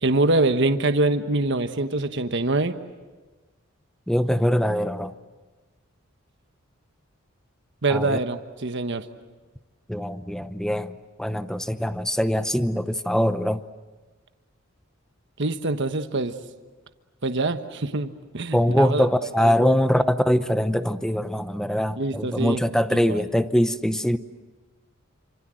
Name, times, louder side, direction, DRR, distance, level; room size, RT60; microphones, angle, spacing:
voice 1, 0.0-2.7 7.8-9.1 15.4-16.4 17.2-19.1 19.4-19.8 22.0-22.6 22.9-23.2, right 2 dB, 60° right, 8 dB, 1.3 m, -24 dB
voice 2, 4.1-5.1 7.9-8.2 9.9-13.6 18.5-24.2, equal, 5° left, 11 dB, 0.8 m, -23 dB
28.5 x 26.5 x 7.8 m, 1.3 s
head